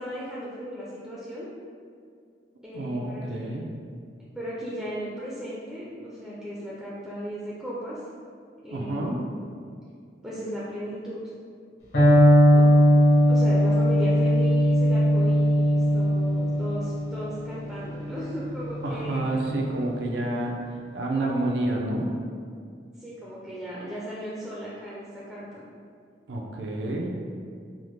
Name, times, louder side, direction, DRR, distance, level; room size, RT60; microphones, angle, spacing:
voice 1, 0.0-1.5 2.6-3.7 4.3-8.0 8.6-9.4 10.2-11.2 12.5-12.8 13.3-19.3 23.0-25.7, equal, 5° right, -8 dB, 0.4 m, -36 dB
voice 2, 2.7-3.6 8.7-9.2 18.8-20.5 20.9-22.1 26.3-27.1, right 1 dB, 75° right, 0 dB, 0.5 m, -28 dB
Electric guitar, 11.9-19.8, equal, 70° left, 1.0 m, -20 dB
3.5 x 2.1 x 3.1 m, 2.3 s
head